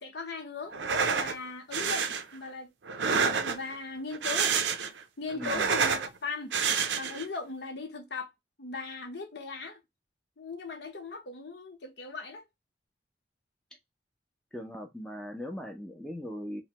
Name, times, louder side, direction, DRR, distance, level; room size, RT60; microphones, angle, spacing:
voice 1, 0.0-2.1 2.3-2.7 3.0-4.6 5.2-6.6 6.9-8.3 8.6-9.8 10.4-12.5, left 4 dB, 70° left, 0.8 m, -38 dB
sound 1, 0.7-1.3 1.7-2.2 2.9-3.7 4.1-5.0 5.3-6.1 6.5-7.3, right 6 dB, 90° right, 0.5 m, -28 dB
voice 2, 5.3-5.7 14.5-16.6, equal, 5° left, 0.5 m, -39 dB
3.0 x 2.2 x 2.8 m
head